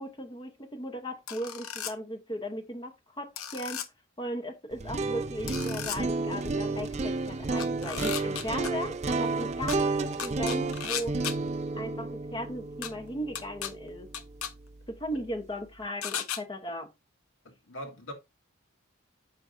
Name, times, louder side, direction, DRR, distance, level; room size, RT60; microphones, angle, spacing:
voice 1, 0.0-3.8 4.2-11.2 11.7-14.1 14.9-16.9, equal, 20° left, 1.0 m, -37 dB
sound 1, 1.3-1.9 3.4-3.9 5.5-6.0 7.6-8.7 9.7-9.8 10.2-11.3 12.8-12.9 13.4-13.7 14.1-14.5 16.0-16.4, left 9 dB, 90° left, 0.9 m, -35 dB
sound 2, 4.7-14.7, right 3 dB, 30° right, 0.5 m, -32 dB
voice 2, 17.4-18.1, equal, 70° left, 2.2 m, -42 dB
8.7 x 6.2 x 2.6 m
head